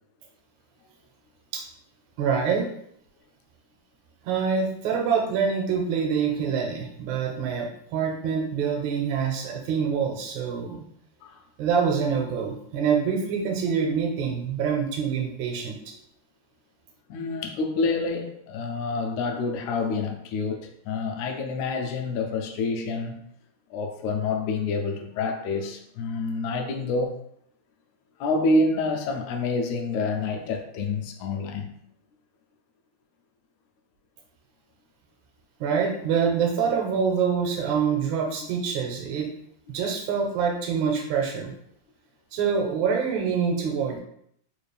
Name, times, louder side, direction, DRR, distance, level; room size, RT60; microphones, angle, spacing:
voice 1, 2.2-2.7 4.3-10.8 11.6-15.8 35.6-39.3 39.7-41.5 42.3-44.0, right 6 dB, 80° right, 2.0 m, -25 dB
voice 2, 17.1-23.2 23.7-27.2 28.2-31.8, left 3 dB, 80° left, 1.8 m, -27 dB
4.8 x 2.5 x 3.2 m
omnidirectional pair, 3.3 m